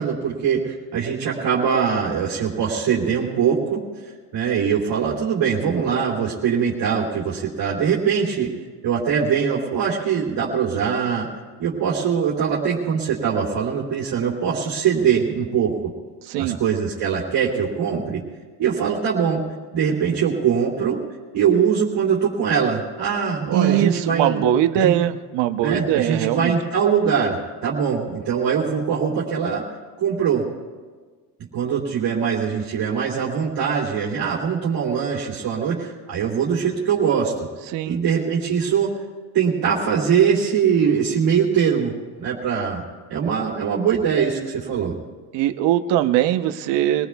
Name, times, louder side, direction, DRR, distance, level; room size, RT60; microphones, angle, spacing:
voice 1, 0.0-8.5 8.8-11.3 11.6-15.9 16.4-18.2 18.6-19.4 19.7-21.0 21.3-24.4 24.7-24.9 25.6-29.6 30.0-30.5 31.5-37.3 37.9-38.9 39.3-42.8 43.1-45.0, right 7 dB, 50° right, -5 dB, 2.9 m, -22 dB
voice 2, 23.5-26.6 37.7-38.0 45.3-47.1, right 12 dB, 65° right, 9 dB, 0.9 m, -21 dB
24.0 x 18.0 x 2.3 m, 1.4 s
cardioid pair, 120°, 46 cm